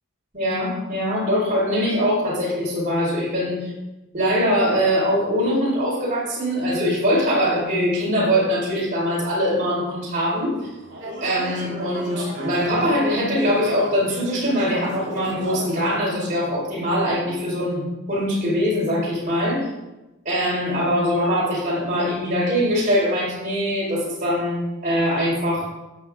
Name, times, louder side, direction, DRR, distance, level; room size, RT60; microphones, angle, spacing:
voice 1, 0.3-3.7 4.1-10.5 11.2-17.8 18.1-19.7 20.2-25.7, equal, 40° right, -6 dB, 4.1 m, -22 dB
sound 1, 10.3-16.0, right 1 dB, 60° right, 2.3 m, -36 dB
14.0 x 8.8 x 3.6 m, 1.0 s
head